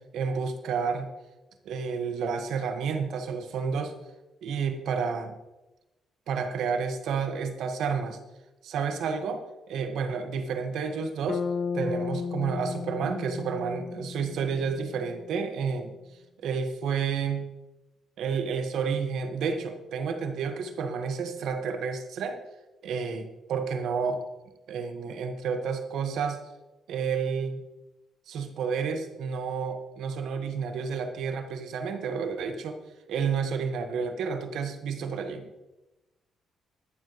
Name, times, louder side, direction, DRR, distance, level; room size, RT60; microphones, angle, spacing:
voice 1, 0.1-1.1 1.6-3.9 4.4-5.4 6.3-8.2 8.6-11.4 11.7-15.9 16.4-17.5 18.2-22.4 22.8-24.2 24.7-26.4 26.9-27.6 28.3-32.8 33.1-35.5, right 6 dB, 75° right, 6 dB, 1.5 m, -30 dB
Bass guitar, 11.3-15.4, left 5 dB, 45° left, 0.3 m, -34 dB
22.0 x 7.5 x 3.1 m, 1.0 s
cardioid pair, 90°, 0 cm